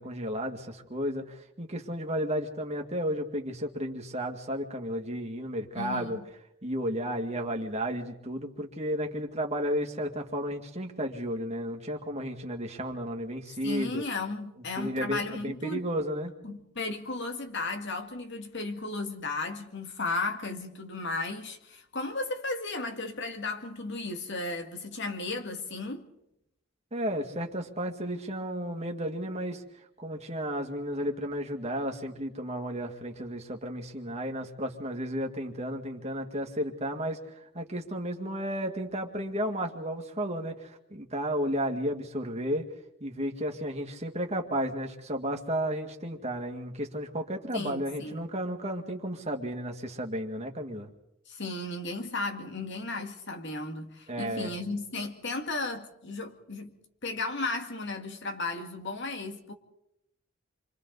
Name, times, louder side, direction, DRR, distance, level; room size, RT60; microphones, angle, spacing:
voice 1, 0.0-6.2 6.6-14.0 14.8-16.3 26.9-29.6 30.0-42.7 43.0-50.9 54.1-54.5, equal, 30° right, 2.2 m, -33 dB
voice 2, 5.7-6.2 13.6-15.8 16.4-26.1 47.5-48.3 51.3-56.8 57.0-59.5, left 3 dB, 55° left, 2.3 m, -35 dB
29.0 x 24.5 x 4.1 m
head